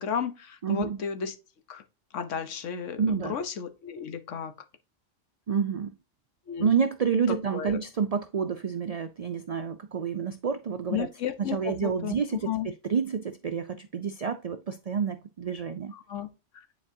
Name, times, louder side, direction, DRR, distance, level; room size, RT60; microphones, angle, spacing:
voice 1, 0.0-1.4 1.7-1.8 2.1-4.5 6.5-6.7 7.5-7.8 10.9-12.2 12.4-12.7 15.9-16.3, left 8 dB, 80° left, 1.2 m, -33 dB
voice 2, 0.6-1.0 3.0-3.3 5.5-5.9 6.6-11.1 11.4-15.9, right 6 dB, 70° right, 0.3 m, -29 dB
9.8 x 4.1 x 2.6 m
omnidirectional pair, 1.3 m